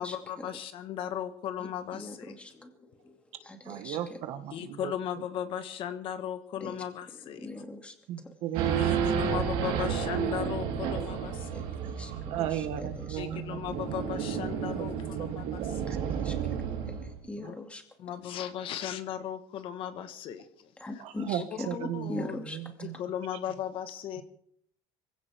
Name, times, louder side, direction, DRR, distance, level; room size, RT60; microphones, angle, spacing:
voice 1, 0.0-2.4 4.5-7.5 8.6-11.6 13.2-15.6 17.4-17.5 18.0-21.0 21.6-22.4 22.9-24.2, left 9 dB, 50° left, 9 dB, 1.5 m, -37 dB
voice 2, 1.9-4.0 6.6-6.7 7.3-7.9 8.2-8.3 11.5-12.1 12.4-12.5 12.8-13.6 15.9-16.6 17.0-17.8 20.8-22.6, left 2 dB, 10° left, 4 dB, 2.5 m, -42 dB
voice 3, 3.6-4.9 8.1-9.1 12.3-14.0 14.7-14.9 15.2-16.2 17.0-17.1 21.0-23.0 24.2-24.3, right 11 dB, 65° right, 8 dB, 1.8 m, -36 dB
Race car auto racing / Idling / Accelerating revving vroom, 8.5-17.2, right 7 dB, 80° right, 4.0 m, -31 dB
23.5 x 16.5 x 3.6 m, 0.68 s
cardioid pair, 150°, 12 cm